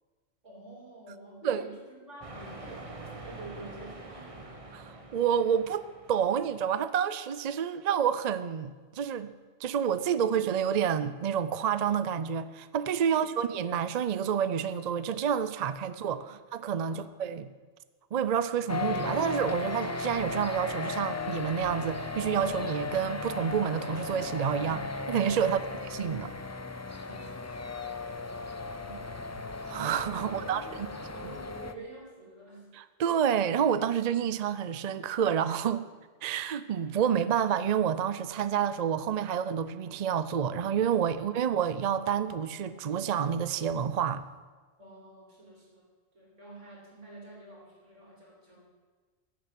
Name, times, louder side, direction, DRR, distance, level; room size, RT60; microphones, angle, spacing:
voice 1, 0.4-4.7 13.0-13.4 16.2-16.3 16.8-17.1 25.4-26.2 26.9-29.3 30.2-32.7 44.8-45.9 46.1-48.7, right 2 dB, 80° right, 3.9 m, -49 dB
sound 1, 2.2-6.7, right 2 dB, 30° right, 1.2 m, -46 dB
voice 2, 4.8-9.3 9.6-17.5 18.1-25.6 25.9-26.3 29.6-30.9 32.8-35.9 36.2-44.2, right 8 dB, 50° right, 0.5 m, -29 dB
sound 2, 18.7-31.7, left 3 dB, 25° left, 0.3 m, -36 dB
15.0 x 7.4 x 7.6 m
omnidirectional pair, 1.2 m